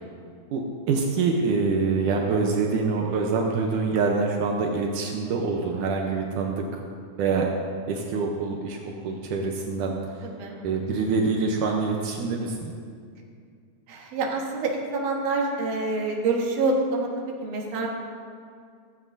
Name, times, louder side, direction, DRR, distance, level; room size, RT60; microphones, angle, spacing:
voice 1, 0.5-6.8 7.2-10.3 10.6-12.7, right 4 dB, 80° right, 0 dB, 2.4 m, -26 dB
voice 2, 10.4-10.8 13.9-17.9, right 3 dB, 60° right, -1 dB, 2.5 m, -27 dB
16.0 x 14.5 x 2.7 m, 2.2 s
omnidirectional pair, 3.6 m